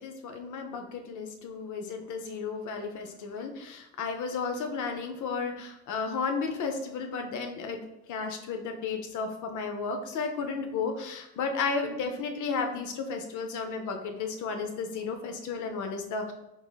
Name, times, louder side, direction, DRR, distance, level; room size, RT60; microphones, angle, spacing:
voice 1, 0.0-7.8 8.1-16.3, left 4 dB, 75° left, 5 dB, 0.7 m, -33 dB
4.1 x 3.5 x 2.3 m, 0.89 s
cardioid pair, 90°, 30 cm